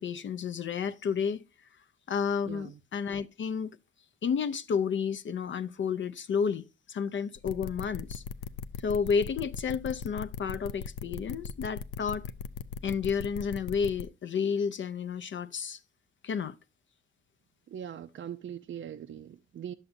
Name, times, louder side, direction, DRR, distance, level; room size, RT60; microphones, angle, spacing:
voice 1, 0.0-1.4 2.1-3.7 4.2-8.2 8.8-12.3 12.8-15.8 16.2-16.6, left 6 dB, 40° left, 0.4 m, -31 dB
voice 2, 2.5-2.8 17.7-19.7, right 9 dB, 40° right, 0.5 m, -41 dB
sound 1, 7.4-14.0, left 6 dB, 90° left, 0.6 m, -38 dB
10.5 x 6.9 x 2.6 m
cardioid pair, 90°, 30 cm